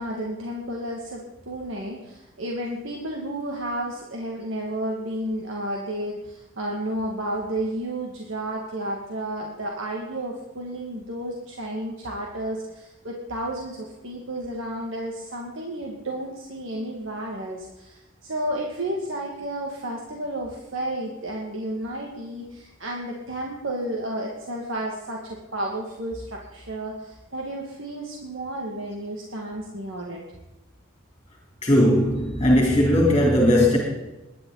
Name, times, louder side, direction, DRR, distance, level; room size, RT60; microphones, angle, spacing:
voice 1, 0.0-30.2, right 1 dB, 80° right, -1 dB, 2.2 m, -32 dB
voice 2, 31.6-33.8, left 1 dB, 25° left, -2 dB, 3.4 m, -18 dB
21.5 x 11.0 x 4.0 m, 1.0 s
head